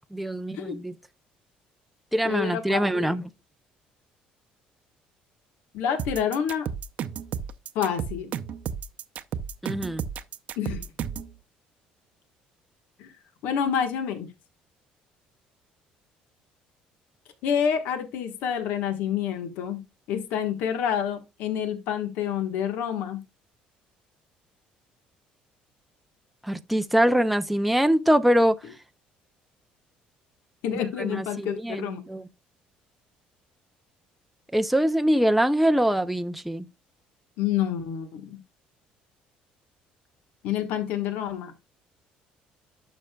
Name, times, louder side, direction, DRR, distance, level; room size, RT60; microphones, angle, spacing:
voice 1, 0.2-0.9 2.1-3.2 9.6-10.0 26.4-28.6 31.0-32.2 34.5-36.6, equal, ahead, 0.4 m, -23 dB
voice 2, 2.2-3.2 5.7-6.7 7.7-8.3 10.6-10.8 13.0-13.1 13.4-14.3 17.4-19.8 20.1-23.2 30.6-32.0 37.4-38.4 40.4-41.5, left 8 dB, 80° left, 1.3 m, -28 dB
sound 1, 6.0-11.3, right 8 dB, 55° right, 0.6 m, -33 dB
11.5 x 6.3 x 2.3 m
cardioid pair, 125°, 3 cm